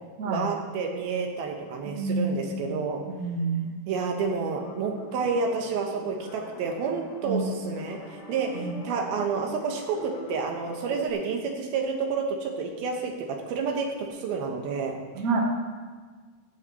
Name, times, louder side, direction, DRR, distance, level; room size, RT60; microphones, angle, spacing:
voice 1, 0.2-3.0 3.9-14.9, right 5 dB, 75° right, 2 dB, 2.9 m, -30 dB
voice 2, 1.8-2.8 3.1-3.7 7.2-7.4 8.5-8.8 15.1-15.4, right 3 dB, 60° right, -1 dB, 0.9 m, -28 dB
sound 1, 4.3-11.1, left 3 dB, 70° left, 1.6 m, -42 dB
15.0 x 8.0 x 4.2 m, 1.5 s
omnidirectional pair, 4.5 m